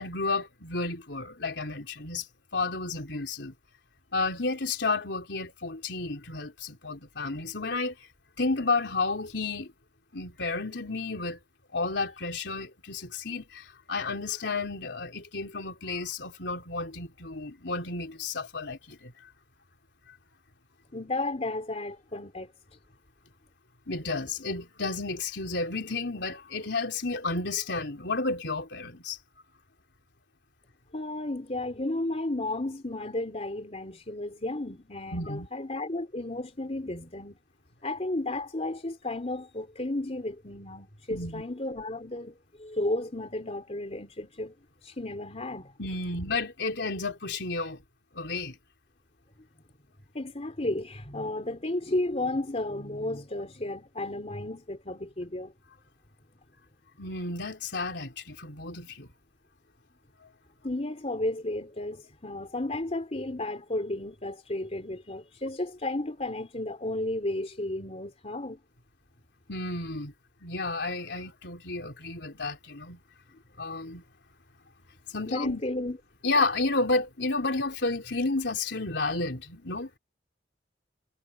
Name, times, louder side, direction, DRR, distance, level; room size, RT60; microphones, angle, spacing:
voice 1, 0.0-2.3 2.5-3.5 4.1-7.9 8.4-9.7 10.1-11.4 11.7-19.1 23.9-29.2 35.1-35.5 41.1-41.4 45.8-47.8 48.1-48.6 57.0-59.1 60.2-60.3 69.5-70.1 70.4-73.0 73.6-74.0 75.1-75.6 76.2-79.9, left 3 dB, 70° left, 4.1 m, -31 dB
voice 2, 20.9-22.5 30.9-37.4 37.8-44.5 44.8-45.7 50.1-55.5 60.6-68.6 75.2-76.0, left 2 dB, 35° left, 3.1 m, -33 dB
head